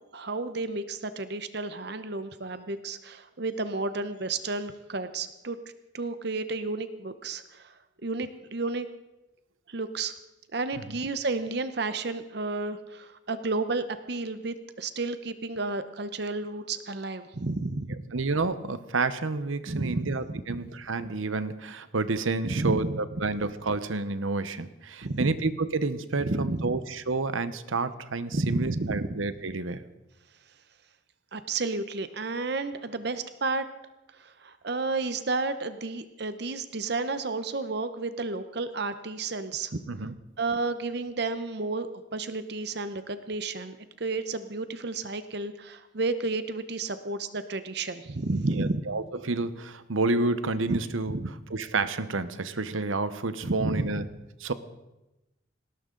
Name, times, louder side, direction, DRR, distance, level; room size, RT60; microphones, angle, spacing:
voice 1, 0.1-5.6 5.9-7.7 8.0-8.9 9.7-10.1 10.5-18.0 19.7-20.4 22.5-23.0 25.0-25.3 26.2-26.7 28.3-29.2 31.3-33.7 34.2-39.8 40.4-41.9 42.1-48.8 50.7-50.8 51.1-51.3 53.4-53.9, right 3 dB, 55° right, 11 dB, 0.8 m, -31 dB
voice 2, 18.1-29.8 39.9-40.1 48.5-51.2 51.5-54.1 54.4-54.5, right 3 dB, 85° right, 13 dB, 0.9 m, -29 dB
19.0 x 17.5 x 3.9 m, 0.98 s
head